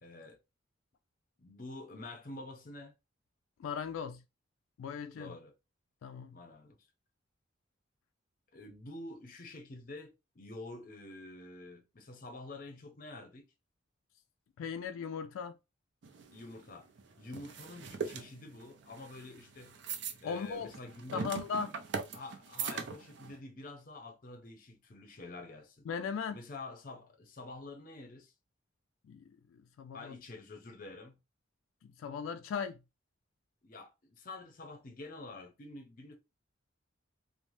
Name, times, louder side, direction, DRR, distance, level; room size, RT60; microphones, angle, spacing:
voice 1, 0.0-0.4 1.4-2.9 5.1-5.5 6.3-6.8 8.5-13.4 16.3-16.9 17.2-19.7 20.2-21.3 22.1-25.9 26.3-28.3 29.9-31.2 33.6-36.2, left 2 dB, 45° left, 0.6 m, -48 dB
voice 2, 3.6-4.2 4.8-5.3 6.0-6.4 14.6-15.6 20.2-20.7 21.1-21.7 25.9-26.4 29.0-30.1 31.8-32.8, left 6 dB, 90° left, 0.3 m, -38 dB
sound 1, 16.0-23.4, right 5 dB, 60° right, 0.4 m, -41 dB
3.2 x 2.1 x 2.6 m
head